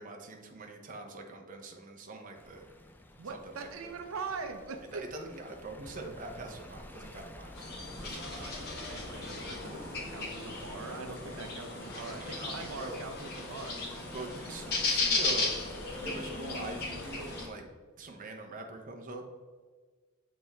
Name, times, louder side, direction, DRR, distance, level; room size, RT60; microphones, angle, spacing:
voice 1, 0.0-2.6 3.3-3.9 4.9-7.5 8.0-8.5 12.0-13.0 14.1-15.5 16.0-17.6 18.0-19.2, right 2 dB, 40° right, 3 dB, 0.7 m, -43 dB
Stream, 2.3-17.5, left 1 dB, 10° left, 0.4 m, -49 dB
voice 2, 3.2-5.3 8.2-13.8, right 4 dB, 90° right, 6 dB, 0.6 m, -42 dB
sound 1, 7.5-17.4, left 3 dB, 50° left, 1.5 m, -36 dB
6.8 x 4.2 x 3.4 m, 1.5 s
head